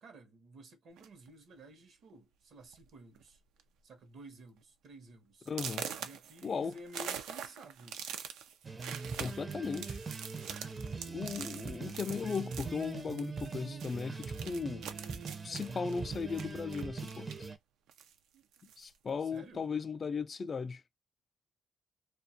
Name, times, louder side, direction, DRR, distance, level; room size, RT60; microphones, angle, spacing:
voice 1, 0.0-3.4 3.8-5.5 6.0-8.0 19.2-19.6, right 1 dB, 65° right, 0.8 m, -53 dB
sound 1, 1.0-1.3 2.1-2.2 2.6-2.9 3.2-3.6 4.0-4.1 4.6-4.7 5.5-13.5 13.8-17.5 17.9-18.9, right 8 dB, 90° right, 0.4 m, -44 dB
voice 2, 5.5-5.9 6.4-6.8 9.2-10.0 11.1-14.9 15.4-17.5 18.8-20.8, left 5 dB, 40° left, 0.3 m, -37 dB
sound 2, 8.6-17.6, right 4 dB, 30° right, 0.5 m, -42 dB
2.3 x 2.3 x 2.7 m
cardioid pair, 90°, 0 cm